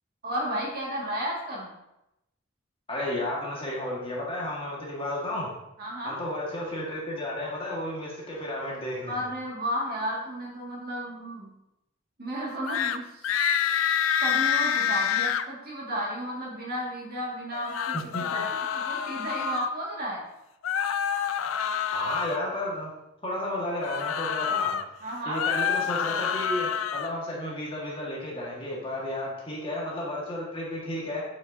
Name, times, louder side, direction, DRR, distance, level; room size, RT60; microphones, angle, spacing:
voice 1, 0.2-1.7 5.8-6.2 9.1-11.5 12.2-13.3 14.2-18.3 18.7-20.2 25.0-25.4, equal, 50° right, -4 dB, 2.1 m, -33 dB
voice 2, 2.9-5.5 6.0-9.2 18.1-18.4 21.9-22.9 23.2-24.8 25.3-31.2, left 1 dB, 30° left, -4 dB, 1.7 m, -32 dB
sound 1, 12.7-13.0 13.2-15.4 17.5-19.7 20.6-22.4 23.8-24.8 25.2-27.1, left 8 dB, 90° left, 0.4 m, -27 dB
7.7 x 5.8 x 2.7 m, 0.88 s
head